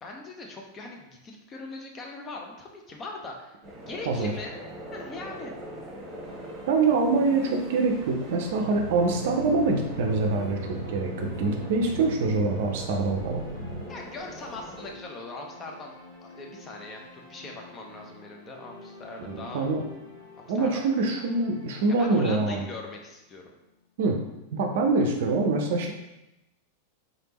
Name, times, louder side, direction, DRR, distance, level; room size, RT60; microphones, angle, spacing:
voice 1, 0.0-3.6 3.9-4.6 4.9-5.5 13.9-15.9 16.2-19.7 20.4-20.8 22.0-23.5, left 3 dB, 25° left, 1 dB, 0.7 m, -40 dB
sound 1, 3.6-14.9, right 1 dB, 25° right, 1.0 m, -42 dB
sound 2, 5.9-23.8, left 2 dB, 65° left, 1.3 m, -48 dB
voice 2, 6.7-13.4 19.3-19.8 20.5-22.6 24.0-24.2 24.5-25.9, right 3 dB, 55° right, 3 dB, 0.5 m, -25 dB
sound 3, 8.5-13.8, right 2 dB, 85° left, 0.4 m, -37 dB
4.0 x 3.4 x 2.9 m, 0.92 s
figure-of-eight pair, 90°, 0 cm